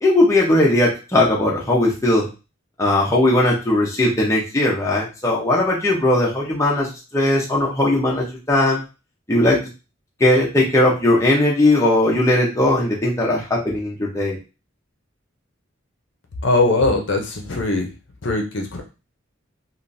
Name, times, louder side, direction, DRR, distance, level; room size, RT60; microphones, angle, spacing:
voice 1, 0.0-2.3 2.8-6.9 7.1-8.8 9.3-9.6 10.2-14.4, left 1 dB, 15° left, -4 dB, 0.8 m, -18 dB
voice 2, 16.4-17.9 18.2-18.8, left 2 dB, 60° left, 2 dB, 0.7 m, -20 dB
3.5 x 2.6 x 2.6 m, 0.30 s
head